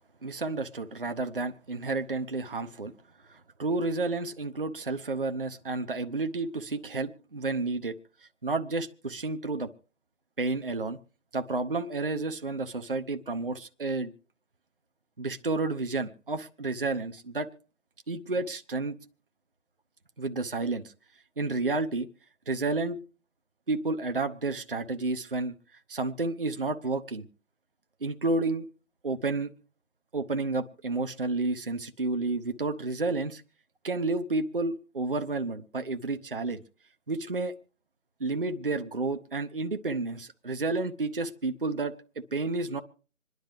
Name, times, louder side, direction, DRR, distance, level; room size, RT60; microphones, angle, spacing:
voice 1, 0.2-2.9 3.3-7.9 8.4-9.7 10.4-11.0 11.3-14.1 15.2-17.5 18.1-19.0 20.2-20.8 21.4-22.1 22.5-23.0 23.7-25.5 25.9-27.3 28.0-28.7 29.0-29.5 30.1-33.4 33.8-36.6 37.1-37.5 38.2-41.9 42.3-42.8, right 3 dB, 40° right, 8 dB, 0.6 m, -31 dB
26.5 x 10.5 x 3.3 m, 0.39 s
figure-of-eight pair, 165°, 43 cm